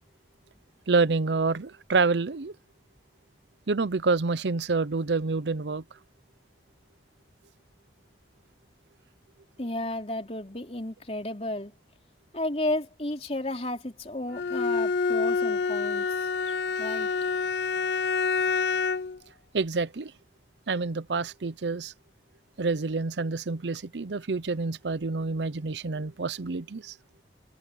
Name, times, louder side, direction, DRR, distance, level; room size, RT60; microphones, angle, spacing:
voice 1, 0.9-2.5 3.7-5.8 19.5-20.1 20.7-21.9 22.6-26.9, right 4 dB, 85° right, 0.7 m, -27 dB
voice 2, 9.6-11.7 12.3-17.1, left 1 dB, 35° left, 3.9 m, -33 dB
Bowed string instrument, 14.3-19.2, left 5 dB, 80° left, 0.5 m, -27 dB
head